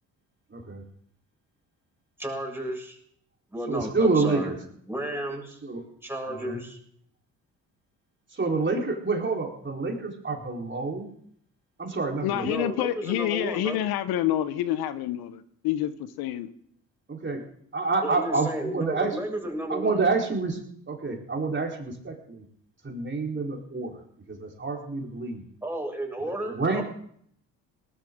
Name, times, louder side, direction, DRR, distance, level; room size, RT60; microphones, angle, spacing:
voice 1, 0.5-0.8 3.7-4.6 5.6-5.8 6.3-6.6 8.3-11.1 11.8-12.5 17.1-17.4 17.7-19.1 19.7-20.6 20.9-22.4 22.8-24.0 24.3-25.4 26.2-26.8, right 3 dB, 30° right, 0 dB, 4.1 m, -28 dB
voice 2, 2.2-3.0 3.5-4.5 4.9-5.6 6.0-6.8 12.4-13.9 18.0-20.0 25.6-26.8, right 1 dB, 5° right, 0 dB, 7.1 m, -33 dB
voice 3, 12.2-15.9 16.2-16.5, left 12 dB, 75° left, 13 dB, 1.0 m, -27 dB
19.5 x 13.5 x 3.8 m, 0.65 s
hypercardioid pair, 60°, 38 cm